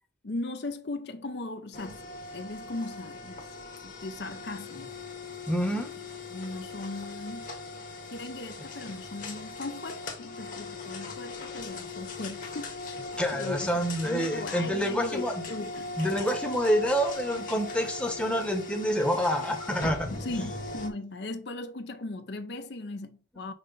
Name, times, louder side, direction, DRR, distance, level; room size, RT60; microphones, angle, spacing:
voice 1, 0.2-2.0 2.3-3.5 3.8-4.9 5.7-5.8 6.3-7.5 8.1-12.8 13.3-13.7 14.0-15.9 20.2-23.5, left 2 dB, 60° left, 0.6 m, -38 dB
Trash Compactor, 1.7-20.9, left 3 dB, 45° left, 1.4 m, -39 dB
voice 2, 5.5-5.9 13.2-15.4 16.0-20.5, equal, 5° left, 0.9 m, -28 dB
5.7 x 3.2 x 5.4 m
head